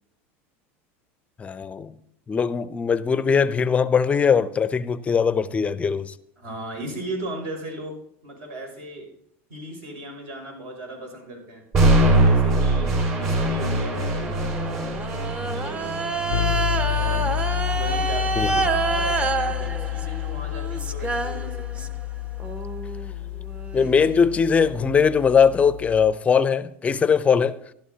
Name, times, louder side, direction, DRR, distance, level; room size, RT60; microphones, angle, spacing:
voice 1, 1.4-1.9 2.3-6.1 18.4-18.6 23.7-27.6, left 6 dB, 20° left, 0.5 m, -20 dB
voice 2, 6.4-9.1 9.5-11.7 12.2-14.8 15.1-16.3 16.9-21.9, right 1 dB, 70° right, 5.9 m, -37 dB
sound 1, 11.7-19.8, right 1 dB, 45° right, 4.5 m, -23 dB
sound 2, 14.2-22.0 22.4-25.1, right 4 dB, 20° right, 0.7 m, -28 dB
sound 3, 16.3-26.1, left 17 dB, 85° left, 0.4 m, -29 dB
15.5 x 11.5 x 2.8 m
supercardioid pair, 125°, 7 cm